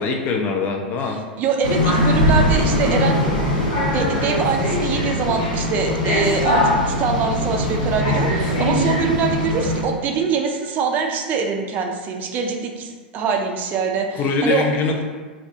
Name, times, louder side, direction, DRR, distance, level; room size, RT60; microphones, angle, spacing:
voice 1, 0.0-1.2 14.1-15.0, left 4 dB, 35° left, 2 dB, 0.4 m, -22 dB
voice 2, 1.4-3.2 3.9-14.7, right 5 dB, 35° right, 3 dB, 0.3 m, -23 dB
sound 1, 1.6-9.8, left 1 dB, 80° left, 1.1 m, -20 dB
2.2 x 2.1 x 2.7 m, 1.4 s
hypercardioid pair, 95°, 5 cm